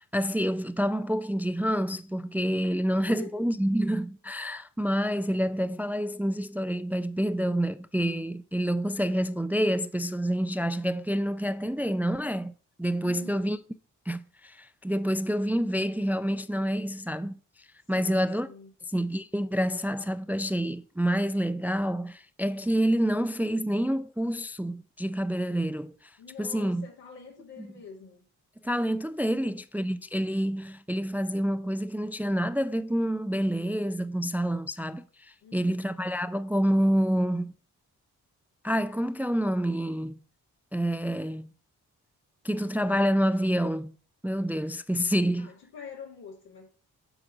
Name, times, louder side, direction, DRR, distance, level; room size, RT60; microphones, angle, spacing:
voice 1, 0.0-12.5 12.8-13.6 14.1-17.4 17.9-18.5 18.9-26.1 26.4-26.9 27.6-27.7 28.6-37.5 38.6-40.2 40.7-41.5 42.4-44.0 44.2-45.5, equal, 5° right, 0.4 m, -28 dB
voice 2, 2.8-3.4 13.0-13.6 18.0-18.7 26.2-28.3 29.3-29.6 35.4-35.9 45.4-46.7, left 5 dB, 85° left, 2.1 m, -46 dB
7.8 x 3.7 x 6.2 m
supercardioid pair, 40°, 40 cm